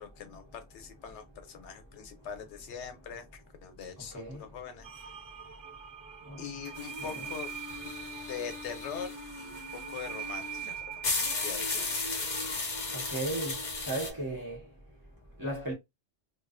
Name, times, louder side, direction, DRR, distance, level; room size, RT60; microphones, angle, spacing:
voice 1, 0.0-4.9 6.4-7.5 8.3-11.0 11.4-11.9, left 7 dB, 90° left, 0.9 m, -42 dB
sound 1, 4.8-13.9, right 8 dB, 60° right, 0.7 m, -44 dB
sound 2, 6.7-14.1, left 3 dB, 45° left, 0.8 m, -36 dB
voice 2, 12.9-13.5 13.9-14.6 15.4-15.7, right 2 dB, 20° right, 0.9 m, -35 dB
2.3 x 2.3 x 2.4 m
omnidirectional pair, 1.1 m